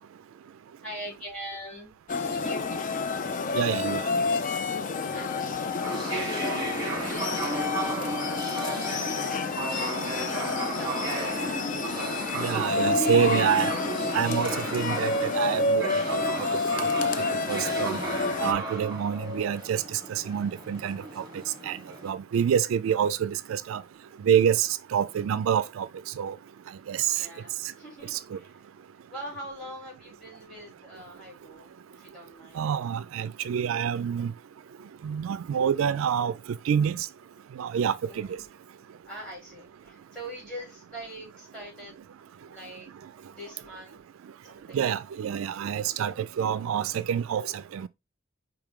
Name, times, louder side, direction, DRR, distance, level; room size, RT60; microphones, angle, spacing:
voice 1, 0.8-2.8 5.1-5.5 6.0-13.5 27.1-28.6 29.1-32.7 38.0-38.5 39.0-42.9 43.3-44.0 44.5-44.9, right 1 dB, 5° left, 3.2 m, -43 dB
sound 1, 2.1-18.5, left 4 dB, 40° left, 0.4 m, -29 dB
voice 2, 3.6-4.0 12.4-13.7 14.1-16.5 17.5-18.0 18.4-19.8 20.1-21.0 21.7-21.8 22.0-23.8 24.3-25.9 26.2-26.3 26.9-27.1 28.1-28.2 32.6-34.3 35.0-36.3 36.7-37.0 37.6-38.3 44.7-47.5 47.7-47.8, right 8 dB, 75° right, 0.3 m, -27 dB
sound 2, 5.8-22.1, right 2 dB, 20° right, 1.3 m, -34 dB
4.7 x 3.1 x 3.6 m
head